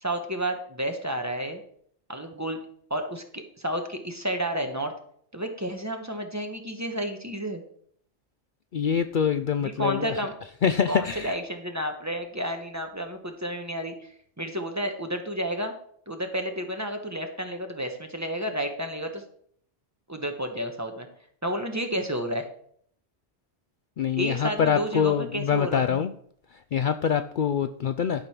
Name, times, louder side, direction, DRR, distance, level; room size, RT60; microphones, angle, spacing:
voice 1, 0.0-1.6 2.1-2.6 2.9-4.9 5.3-7.6 9.6-10.3 10.9-15.7 16.1-19.2 20.1-21.1 21.4-22.5 24.2-26.0, equal, 15° right, 4 dB, 1.2 m, -31 dB
voice 2, 8.7-10.1 10.6-11.3 24.0-26.1 26.7-28.3, left 7 dB, 60° left, 10 dB, 0.6 m, -25 dB
11.5 x 5.3 x 6.0 m, 0.63 s
omnidirectional pair, 1.1 m